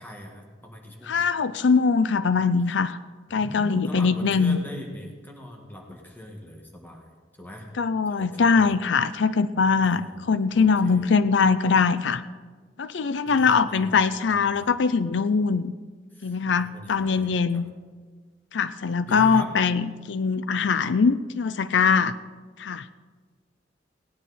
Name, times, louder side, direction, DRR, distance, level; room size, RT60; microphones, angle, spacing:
voice 1, 0.0-1.2 3.3-7.1 7.4-7.7 8.1-8.8 9.8-10.3 10.5-11.1 13.3-13.9 14.3-14.7 16.1-17.6 19.1-19.5, left 1 dB, 10° left, 0 dB, 1.6 m, -41 dB
voice 2, 1.0-3.0 3.3-4.6 7.8-12.2 12.8-15.7 16.2-17.7 18.5-22.1 22.6-22.8, left 5 dB, 75° left, 14 dB, 0.5 m, -22 dB
17.5 x 10.0 x 4.1 m, 1.5 s
head